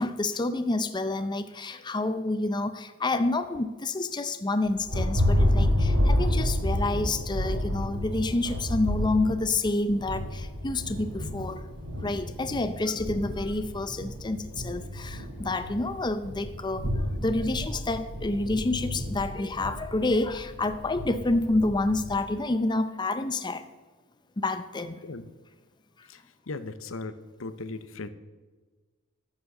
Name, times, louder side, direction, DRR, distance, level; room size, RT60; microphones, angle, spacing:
voice 1, 0.0-11.6 12.0-16.9 17.2-23.6 24.4-25.0, left 2 dB, 20° left, 10 dB, 0.5 m, -28 dB
Thunder, 4.6-22.2, left 1 dB, 85° right, 4.2 m, -30 dB
voice 2, 26.5-28.1, left 3 dB, 65° left, 13 dB, 0.8 m, -37 dB
12.5 x 7.4 x 6.6 m, 1.3 s
head